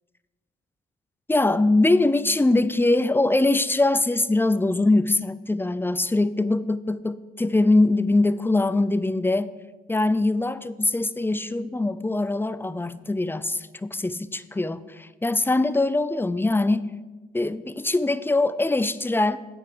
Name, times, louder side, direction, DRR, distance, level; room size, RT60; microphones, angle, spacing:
voice 1, 1.3-9.5 9.9-16.9 17.3-19.4, left 2 dB, 10° left, 15 dB, 0.5 m, -22 dB
9.4 x 8.0 x 6.7 m, 1.2 s
cardioid pair, 90°, 20 cm